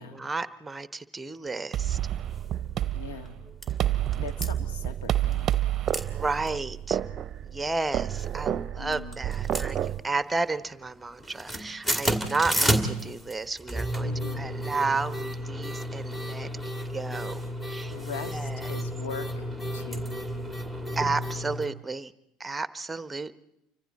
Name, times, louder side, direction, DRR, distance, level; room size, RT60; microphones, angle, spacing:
voice 1, 0.0-2.0 6.1-7.0 7.4-16.5 16.9-17.9 18.3-18.8 20.9-22.1 22.4-23.3, right 3 dB, 15° right, 15 dB, 0.9 m, -32 dB
sound 1, 1.7-10.0, right 11 dB, 40° right, 0.7 m, -29 dB
sound 2, 2.3-2.5 3.0-3.1 3.2-3.7 4.1-4.5 5.3-5.6 5.9-6.0 6.4-6.5 7.0-7.3 8.0-8.6 8.9-10.3 10.6-10.9 11.1-21.7, equal, 10° left, 2.4 m, -31 dB
voice 2, 2.9-3.4 4.2-5.5 8.8-9.2 14.0-14.5 17.9-19.4 19.7-20.1, left 6 dB, 70° left, 8 dB, 2.0 m, -40 dB
29.5 x 25.0 x 4.1 m, 0.85 s
hypercardioid pair, 70°, 0 cm